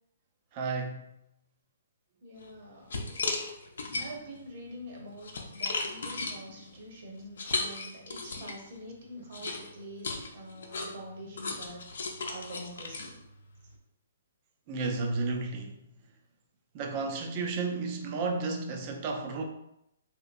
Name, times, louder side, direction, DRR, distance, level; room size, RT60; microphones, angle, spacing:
voice 1, 0.5-1.1 7.1-7.2 9.5-9.6 11.2-11.4 14.7-15.8 16.7-19.4, right 3 dB, 35° right, 3 dB, 0.5 m, -33 dB
voice 2, 2.2-2.9 4.0-13.2, equal, 55° right, -1 dB, 1.1 m, -46 dB
sound 1, 2.4-2.5 2.9-4.4 4.9-8.7 9.3-13.7, left 3 dB, 75° left, 0.6 m, -36 dB
3.1 x 2.8 x 2.6 m, 0.81 s
hypercardioid pair, 145°, 0 cm